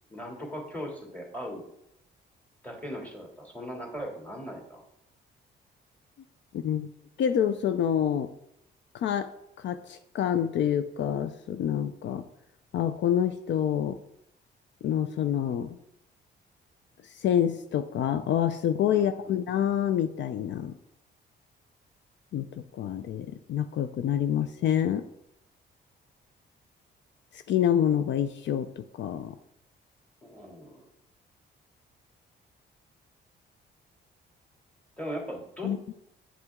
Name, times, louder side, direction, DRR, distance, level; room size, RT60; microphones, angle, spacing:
voice 1, 0.1-1.6 2.6-4.8 18.9-19.4 30.2-30.8 35.0-35.9, equal, 5° left, 0 dB, 2.7 m, -39 dB
voice 2, 6.5-6.9 7.2-8.3 8.9-9.3 9.6-12.2 12.7-14.0 14.8-15.8 17.1-20.7 22.3-22.5 22.7-25.0 27.3-29.3 35.6-35.9, left 9 dB, 65° left, 11 dB, 0.5 m, -27 dB
7.9 x 7.9 x 3.6 m, 0.81 s
cardioid pair, 90°, 20 cm